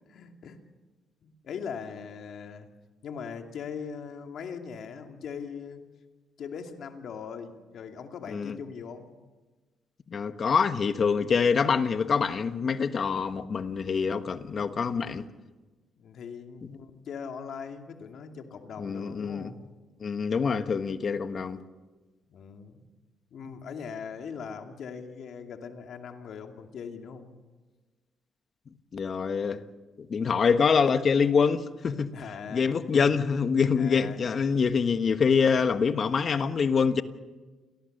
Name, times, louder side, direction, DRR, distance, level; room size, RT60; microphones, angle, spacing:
voice 1, 0.1-0.6 1.2-2.7 3.0-5.8 6.4-9.1 16.0-19.6 22.3-22.9 23.3-27.3 32.1-33.2 33.8-34.2, left 6 dB, 65° left, 2.6 m, -40 dB
voice 2, 10.1-15.3 18.8-19.5 20.0-21.6 28.9-29.6 30.1-32.1 32.5-37.0, left 6 dB, 45° left, 1.3 m, -25 dB
28.0 x 18.0 x 6.8 m
cardioid pair, 90°, 0 cm